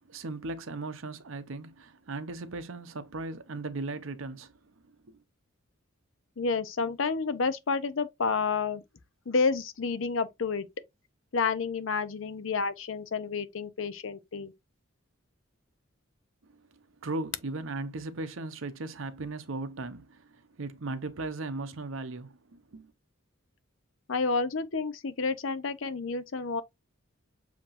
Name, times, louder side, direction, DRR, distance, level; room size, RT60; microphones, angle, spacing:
voice 1, 0.1-4.5 4.9-5.2 16.5-16.6 17.0-22.9, right 3 dB, 70° right, 0.7 m, -37 dB
voice 2, 6.4-8.8 9.3-10.7 11.3-14.5 24.1-26.6, left 4 dB, 70° left, 0.6 m, -30 dB
7.2 x 2.9 x 2.5 m
head